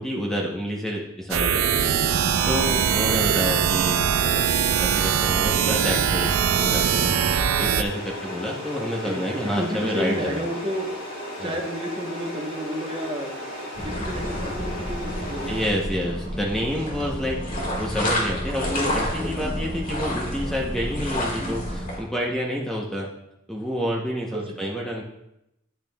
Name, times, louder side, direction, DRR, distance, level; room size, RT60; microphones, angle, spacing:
voice 1, 0.0-4.5 4.8-7.1 7.5-10.4 11.4-11.6 15.5-23.1 23.5-25.0, equal, ahead, -2 dB, 0.7 m, -29 dB
sound 1, 1.3-7.8, right 8 dB, 75° right, 0.4 m, -22 dB
sound 2, 6.5-15.7, equal, 80° left, 2.7 m, -35 dB
voice 2, 9.0-10.9 11.4-13.3 13.8-15.6 24.3-24.8, equal, 25° right, 1 dB, 0.9 m, -31 dB
sound 3, 13.8-22.0, equal, 40° left, 1.7 m, -29 dB
10.5 x 6.6 x 2.2 m, 0.85 s
head